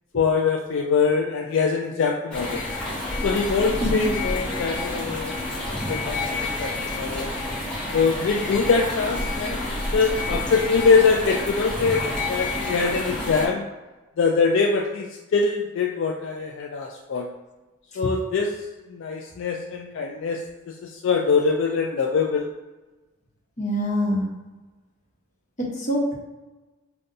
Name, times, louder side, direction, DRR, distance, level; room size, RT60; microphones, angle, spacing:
voice 1, 0.2-2.6 3.2-5.4 5.7-7.3 7.9-9.6 9.9-13.6 14.2-17.3 18.0-18.6 18.9-20.4 20.7-22.5, left 5 dB, 65° left, 0 dB, 0.3 m, -23 dB
sound 1, 2.3-13.5, left 2 dB, 5° left, 0.9 m, -29 dB
voice 2, 23.6-24.3 25.6-26.1, equal, 35° left, -4 dB, 0.9 m, -24 dB
5.2 x 2.3 x 2.6 m, 1.2 s
head